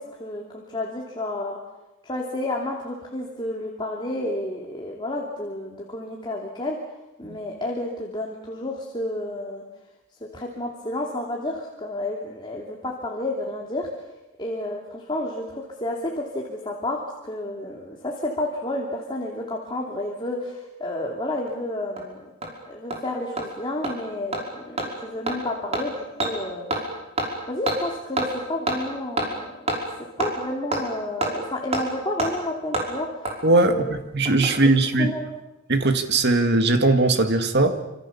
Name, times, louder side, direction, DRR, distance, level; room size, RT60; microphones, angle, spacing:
voice 1, 0.2-1.6 2.0-6.8 7.2-9.6 10.3-13.9 14.4-22.3 22.6-26.7 27.5-29.7 30.2-33.3 33.6-33.9 35.0-35.3, left 1 dB, 20° left, -1 dB, 2.9 m, -30 dB
Hammer, 21.5-21.6 22.0-22.1 22.4-22.5 22.9-23.0 23.4-23.5 23.8-23.9 24.3-24.4 24.8-24.9 25.3-25.4 25.7-25.8 26.2-26.3 26.7-26.8 27.2-27.3 27.7-27.8 28.2-28.3 28.7-28.8 29.2-29.3 29.7-29.8 30.2-30.3 30.7-30.8 31.2-31.3 31.7-31.8 32.2-32.3 32.7-32.9 33.2-33.3 34.3-34.7 34.9-35.0, right 2 dB, 30° right, 5.6 m, -25 dB
voice 2, 33.4-35.1 35.7-37.8, right 2 dB, 50° right, 7 dB, 2.1 m, -19 dB
26.5 x 26.5 x 7.2 m, 1.0 s
head